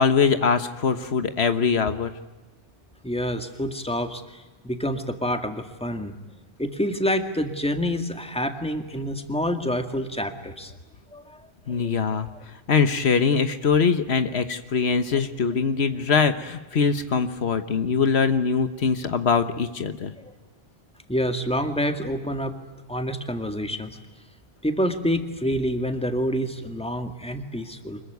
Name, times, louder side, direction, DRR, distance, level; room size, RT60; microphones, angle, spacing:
voice 1, 0.0-2.1 11.7-20.1, left 5 dB, 80° left, 10 dB, 1.5 m, -22 dB
voice 2, 3.0-6.1 6.6-10.7 11.1-11.4 11.8-11.9 20.2-20.3 21.1-22.5 22.9-24.0 24.6-28.0, equal, 5° left, 6 dB, 2.0 m, -27 dB
25.5 x 22.0 x 9.4 m, 1.1 s
omnidirectional pair, 1.1 m